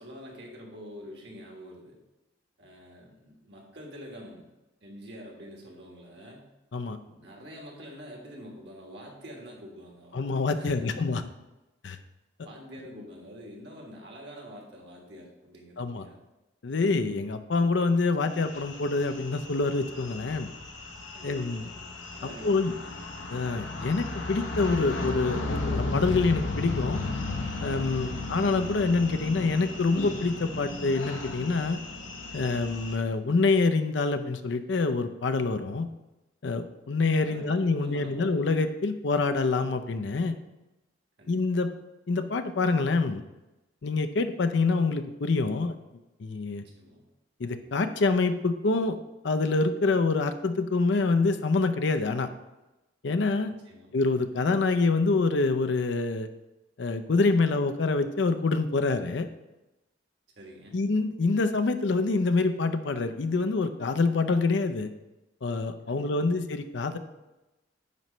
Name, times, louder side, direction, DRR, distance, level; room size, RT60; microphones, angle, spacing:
voice 1, 0.0-2.0 2.6-4.5 4.8-6.5 7.0-10.3 10.5-11.2 12.4-16.2 21.1-22.9 28.0-28.3 37.2-38.4 41.2-41.7 46.5-47.0 53.5-53.9 60.4-60.8 65.9-66.4, equal, 60° right, 0 dB, 1.7 m, -46 dB
voice 2, 10.1-11.2 11.8-12.0 15.8-16.0 16.6-20.5 21.2-21.6 22.4-22.7 23.3-27.0 27.6-31.8 32.3-35.9 36.4-40.4 41.3-41.7 42.1-43.2 43.8-45.7 46.2-46.6 47.4-49.0 49.2-52.3 53.0-53.5 53.9-56.3 56.8-59.3 60.7-64.9 65.4-67.0, left 3 dB, 70° left, 9 dB, 0.5 m, -26 dB
sound 1, 18.4-32.9, left 2 dB, 90° left, 1.0 m, -35 dB
9.2 x 3.1 x 5.5 m, 1.0 s
head